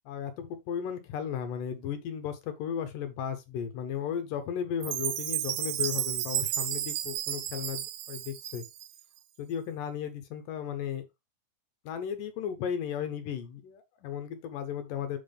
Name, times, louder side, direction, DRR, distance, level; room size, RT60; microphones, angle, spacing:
voice 1, 0.1-8.7 9.4-11.1 11.8-15.2, left 8 dB, 80° left, 2.7 m, -35 dB
Chime, 4.8-9.0, right 13 dB, 80° right, 1.7 m, -32 dB
7.6 x 3.6 x 5.2 m
omnidirectional pair, 3.9 m